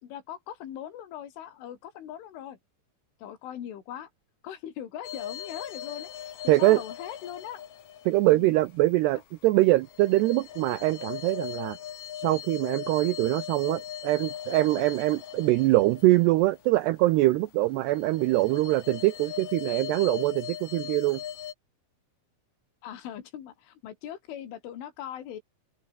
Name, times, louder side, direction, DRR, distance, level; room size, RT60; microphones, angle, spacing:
voice 1, 0.0-2.6 3.2-4.1 4.4-7.6 8.3-8.5 22.8-25.4, left 10 dB, 75° left, 5.5 m, -40 dB
sound 1, 5.0-8.9 9.4-17.4 17.7-21.5, left 10 dB, 60° left, 2.0 m, -40 dB
voice 2, 6.5-6.8 8.1-11.8 12.2-21.2, right 18 dB, 90° right, 2.4 m, -23 dB
open air
omnidirectional pair, 5.6 m